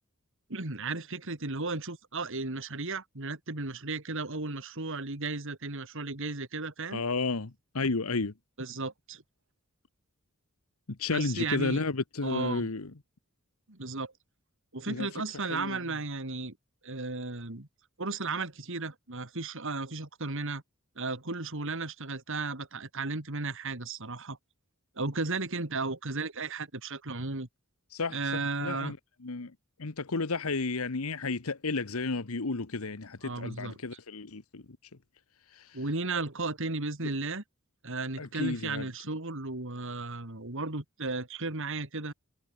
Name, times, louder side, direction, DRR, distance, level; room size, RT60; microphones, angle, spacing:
voice 1, 0.5-7.0 8.6-9.2 11.1-11.8 12.2-12.7 13.7-14.1 14.7-16.6 16.8-17.7 18.0-20.6 21.0-24.4 25.0-27.5 28.1-28.9 33.2-33.8 35.7-37.4 37.8-42.1, right 3 dB, 65° right, 2.8 m, -34 dB
voice 2, 6.9-8.3 11.0-12.9 14.9-15.1 15.5-15.8 27.9-29.0 29.2-29.5 29.8-34.6 35.5-35.8 37.0-37.1 38.2-38.9, left 3 dB, 85° left, 1.2 m, -32 dB
head